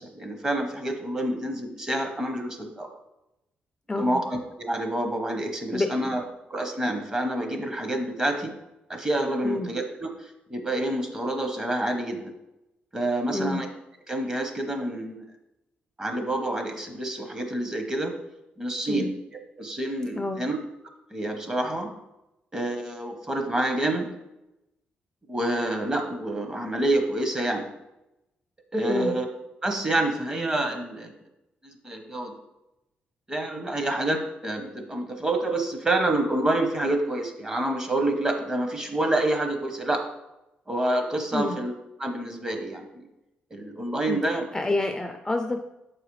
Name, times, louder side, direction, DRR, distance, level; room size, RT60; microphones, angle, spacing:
voice 1, 0.0-2.9 4.0-6.2 6.5-8.5 8.9-10.1 10.5-12.2 12.9-13.7 14.1-15.2 16.0-18.1 18.6-19.1 19.6-20.6 21.1-21.9 22.5-24.0 25.3-27.6 28.7-29.3 29.6-31.1 31.6-32.3 33.3-40.0 40.7-41.7 42.0-43.1 43.5-44.5, right 1 dB, 20° right, 5 dB, 1.0 m, -27 dB
voice 2, 3.9-4.2 5.7-6.1 9.4-9.7 13.3-13.6 18.9-19.1 20.2-20.4 28.9-29.1 41.3-41.6 44.1-45.6, left 2 dB, 15° left, 5 dB, 0.4 m, -28 dB
7.1 x 4.8 x 3.2 m, 0.91 s
cardioid pair, 90°, 4 cm